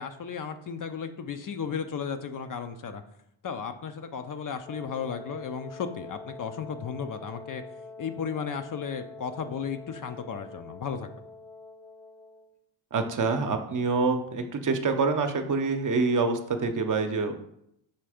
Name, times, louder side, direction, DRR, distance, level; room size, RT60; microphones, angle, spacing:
voice 1, 0.0-3.0 3.4-7.6 8.0-11.1, left 6 dB, 45° left, 8 dB, 0.6 m, -34 dB
Wind instrument woodwind instrument, 4.7-12.5, left 3 dB, 5° left, 0.6 m, -45 dB
voice 2, 12.9-17.3, right 4 dB, 40° right, 6 dB, 0.8 m, -26 dB
5.8 x 3.3 x 4.9 m, 0.76 s
cardioid pair, 75°, 47 cm